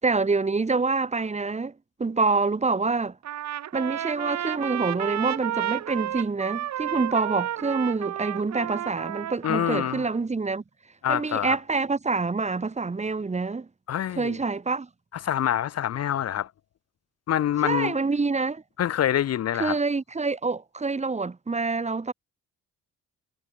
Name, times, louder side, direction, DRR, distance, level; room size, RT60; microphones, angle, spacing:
voice 1, 0.0-1.7 2.0-3.2 3.7-10.6 11.1-13.7 14.2-14.9 17.6-18.6 19.5-22.1, right 4 dB, 25° right, 1.8 m, -26 dB
Trumpet, 3.2-10.2, right 11 dB, 65° right, 1.3 m, -32 dB
voice 2, 9.4-10.0 11.0-11.6 13.9-14.4 15.2-16.5 17.3-18.0 18.8-19.8, left 10 dB, 55° left, 0.9 m, -26 dB
cardioid pair, 90°, 30 cm